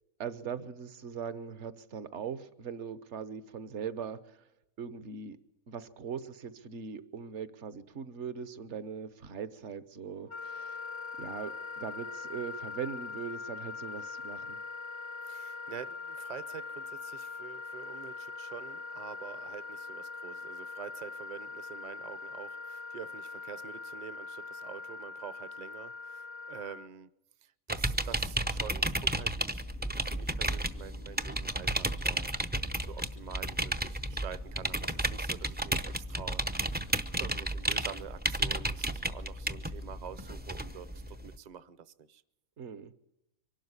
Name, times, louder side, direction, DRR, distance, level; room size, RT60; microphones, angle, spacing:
voice 1, 0.2-4.5 4.8-5.4 5.7-10.8 11.2-14.6 42.6-42.9, right 7 dB, 60° right, 13 dB, 1.3 m, -40 dB
Wind instrument woodwind instrument, 10.3-26.9, left 4 dB, 30° left, 0.6 m, -42 dB
voice 2, 15.2-27.1 27.4-32.3 32.8-42.2, right 9 dB, 40° right, 14 dB, 0.8 m, -47 dB
sound 1, 27.7-41.4, right 1 dB, 15° right, 0.4 m, -33 dB
24.0 x 12.0 x 9.7 m, 0.91 s
omnidirectional pair, 1.4 m